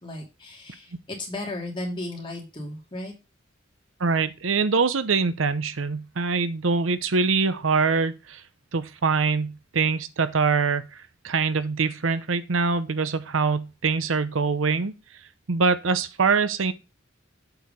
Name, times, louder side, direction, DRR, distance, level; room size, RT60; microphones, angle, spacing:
voice 1, 0.0-3.1, left 1 dB, 25° left, 2.9 m, -35 dB
voice 2, 4.0-8.4 8.7-14.9 15.5-16.7, right 4 dB, 90° right, 0.8 m, -24 dB
7.9 x 4.8 x 5.4 m
head